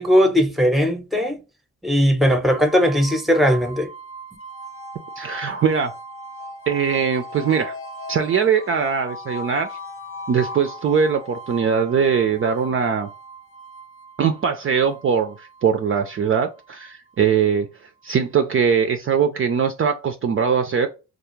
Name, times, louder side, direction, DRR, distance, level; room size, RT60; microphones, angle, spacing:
voice 1, 0.0-1.4 1.8-3.9, equal, ahead, 0.7 m, -18 dB
sound 1, 2.4-17.4, equal, 40° left, 0.5 m, -38 dB
voice 2, 5.2-5.9 6.7-7.8 8.1-9.8 10.3-13.1 14.2-17.7 18.0-20.9, right 6 dB, 40° right, 0.4 m, -21 dB
2.4 x 2.0 x 3.0 m
supercardioid pair, 50°, 35 cm